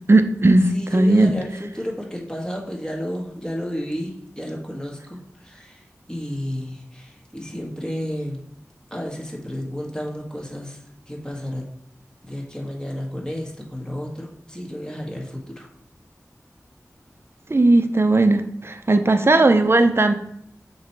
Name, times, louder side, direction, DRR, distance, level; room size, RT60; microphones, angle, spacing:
voice 1, 0.1-1.4 17.5-20.1, right 2 dB, 45° right, 8 dB, 0.7 m, -17 dB
voice 2, 0.7-5.8 6.1-8.4 8.9-10.8 11.1-11.7 12.2-15.7, equal, 15° left, -2 dB, 1.8 m, -32 dB
6.5 x 3.2 x 4.6 m, 0.72 s
wide cardioid pair, 45°, 6 cm